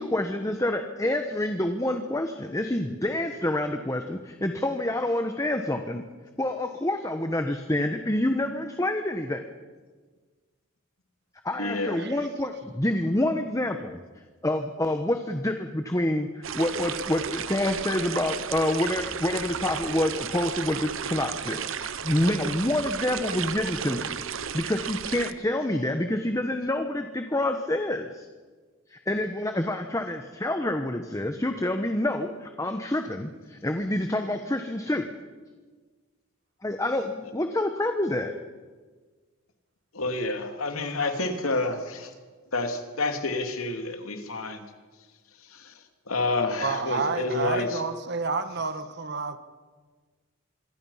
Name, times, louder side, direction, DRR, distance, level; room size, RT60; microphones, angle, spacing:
voice 1, 0.0-6.0 6.4-9.4 11.4-14.0 14.4-24.1 24.5-28.3 28.9-35.1 36.6-38.3, left 1 dB, 15° left, 6 dB, 1.1 m, -27 dB
voice 2, 11.6-12.0 39.9-42.1 42.5-44.6 45.5-45.7 46.1-47.8, left 2 dB, 90° left, 5 dB, 2.7 m, -29 dB
sound 1, 16.4-25.3, right 7 dB, 70° right, 1.0 m, -33 dB
voice 3, 46.6-49.4, right 4 dB, 55° right, 9 dB, 1.6 m, -30 dB
26.5 x 23.0 x 5.8 m, 1.4 s
head